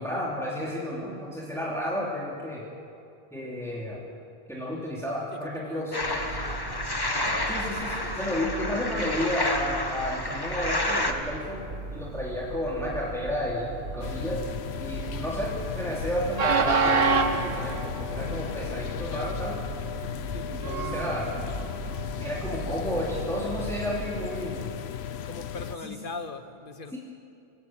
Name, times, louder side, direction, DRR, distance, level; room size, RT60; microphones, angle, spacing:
voice 1, 0.0-2.7 3.3-4.0 4.5-6.0 7.5-11.6 11.9-14.5 14.8-19.6 20.5-21.3 22.2-24.7 25.8-25.9 26.9-27.0, equal, 5° left, -5 dB, 3.2 m, -32 dB
voice 2, 5.3-5.8 6.1-6.9 19.0-19.3 20.3-21.4 25.2-27.0, left 4 dB, 55° left, 8 dB, 1.5 m, -41 dB
sound 1, 5.9-11.1, left 1 dB, 20° left, 1.5 m, -30 dB
Train, 6.0-24.5, right 4 dB, 70° right, 1.6 m, -33 dB
sound 2, 14.0-25.8, left 9 dB, 90° left, 1.0 m, -36 dB
27.0 x 15.0 x 9.0 m, 2.6 s
omnidirectional pair, 1.0 m